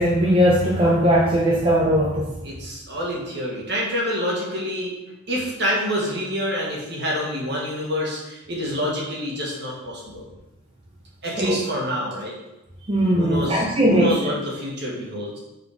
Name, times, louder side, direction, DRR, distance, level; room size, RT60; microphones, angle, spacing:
voice 1, 0.0-2.3 11.4-11.6 12.9-14.1, equal, 25° right, -5 dB, 0.8 m, -19 dB
voice 2, 2.4-4.9 5.3-10.3 11.2-12.3 13.2-15.4, equal, 50° right, -3 dB, 1.6 m, -27 dB
5.3 x 4.2 x 4.8 m, 0.98 s
head